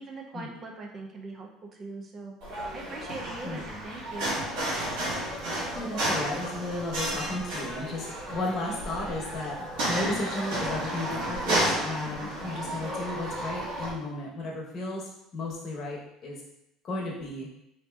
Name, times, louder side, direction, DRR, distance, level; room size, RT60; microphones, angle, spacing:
voice 1, 0.0-2.3 2.7-4.4 12.2-12.3, right 2 dB, 35° right, 1 dB, 0.5 m, -41 dB
sound 1, 2.4-13.9, right 1 dB, 75° right, 1.1 m, -32 dB
voice 2, 5.4-16.4 16.8-17.5, left 2 dB, 45° left, -2 dB, 0.9 m, -34 dB
4.0 x 2.7 x 2.3 m, 0.82 s
cardioid pair, 125°, 0 cm